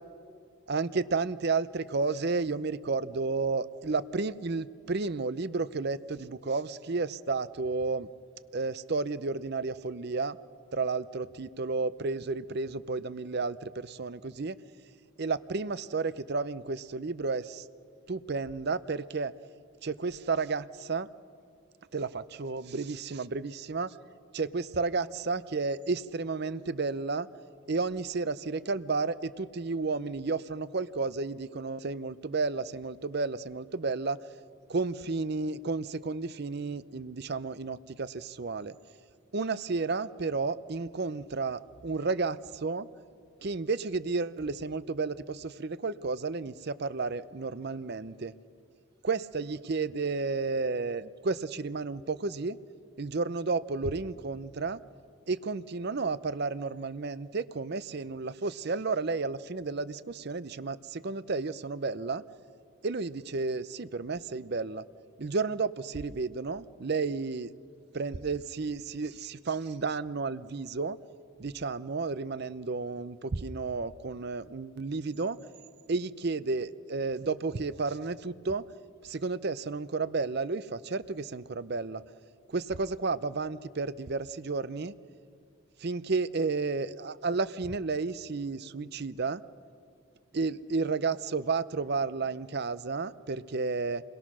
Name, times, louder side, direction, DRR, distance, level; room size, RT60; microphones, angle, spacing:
voice 1, 0.7-8.1 8.5-10.4 10.7-14.6 15.2-17.7 18.1-19.3 19.8-21.1 21.9-24.0 24.3-27.3 27.7-34.2 34.7-38.8 39.3-42.9 43.4-48.3 49.0-52.6 53.0-54.8 55.3-62.2 62.8-64.8 65.2-67.5 67.9-71.0 71.4-75.4 75.9-78.6 79.0-82.0 82.5-84.9 85.8-89.4 90.3-94.0, right 4 dB, 50° right, 15 dB, 0.6 m, -32 dB
29.0 x 22.0 x 6.2 m, 2.2 s
head